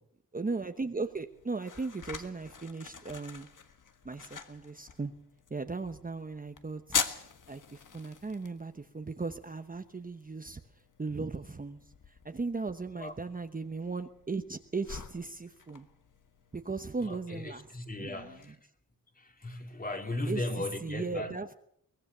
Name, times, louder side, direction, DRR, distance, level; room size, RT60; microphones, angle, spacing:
voice 1, 0.3-3.5 4.0-5.1 5.5-7.0 7.5-10.6 11.0-15.9 16.5-17.7 18.0-18.4 20.3-20.4 20.8-21.5, right 3 dB, 25° right, 7 dB, 1.0 m, -37 dB
sound 1, 0.9-18.5, left 6 dB, 60° left, 1.7 m, -43 dB
voice 2, 17.0-18.6 19.2-21.4, left 2 dB, 25° left, 5 dB, 2.5 m, -37 dB
23.0 x 20.0 x 6.8 m, 0.70 s
wide cardioid pair, 175°, 35 cm